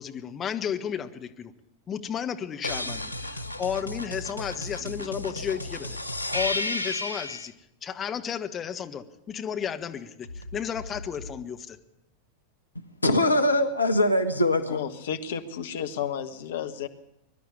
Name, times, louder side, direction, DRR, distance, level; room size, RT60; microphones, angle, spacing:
voice 1, 0.0-1.5 1.9-6.0 6.3-7.5 7.8-11.8, left 8 dB, 25° left, 6 dB, 1.4 m, -33 dB
sound 1, 2.6-7.5 10.2-11.3, left 1 dB, 90° right, 1.2 m, -33 dB
voice 2, 12.7-14.8, left 1 dB, 80° left, 7 dB, 1.3 m, -23 dB
voice 3, 14.7-16.9, left 8 dB, 60° left, 8 dB, 1.4 m, -32 dB
23.0 x 12.0 x 9.8 m, 0.82 s
figure-of-eight pair, 90°, 0 cm